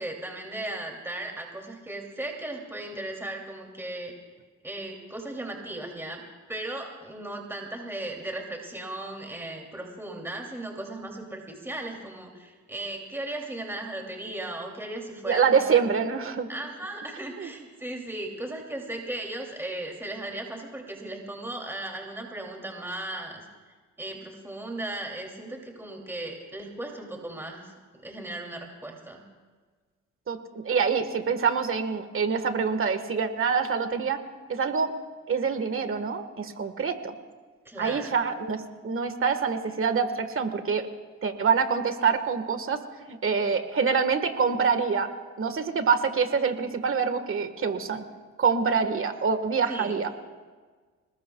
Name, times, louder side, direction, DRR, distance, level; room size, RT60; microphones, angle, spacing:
voice 1, 0.0-4.1 4.6-6.2 6.5-15.8 16.5-23.4 24.0-27.7 28.0-29.2 37.6-38.2 49.7-50.0, right 1 dB, 10° right, 1 dB, 2.8 m, -36 dB
voice 2, 15.2-16.5 17.4-17.5 30.3-34.2 34.5-34.9 35.3-37.1 37.8-40.9 41.2-42.8 43.1-45.1 45.4-48.0 48.4-50.1, right 6 dB, 45° right, 9 dB, 1.6 m, -25 dB
26.0 x 20.0 x 2.3 m, 1.4 s
cardioid pair, 90°, 30 cm